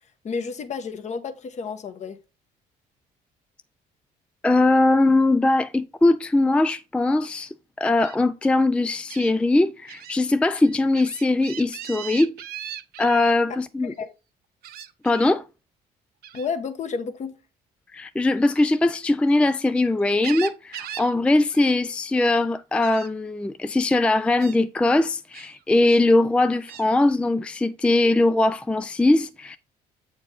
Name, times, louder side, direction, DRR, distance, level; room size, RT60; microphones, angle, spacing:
voice 1, 0.2-2.2 13.5-13.6 13.8-14.1 16.3-17.4, left 5 dB, 45° left, 1.2 m, -31 dB
voice 2, 4.4-12.3 13.0-13.9 15.0-15.4 17.9-29.6, left 2 dB, 5° left, 0.3 m, -21 dB
Gull seagull, 8.0-8.2 9.1-9.3 9.9-10.1 10.5-13.3 14.6-15.3 16.2-16.5 18.4-19.6 20.0-21.1 21.4-21.6 22.0-22.4 22.8-23.1 23.8-24.0 24.4-24.6 25.3-26.0 26.7-26.9, right 11 dB, 65° right, 0.8 m, -39 dB
7.9 x 4.4 x 4.1 m
cardioid pair, 110°, 17 cm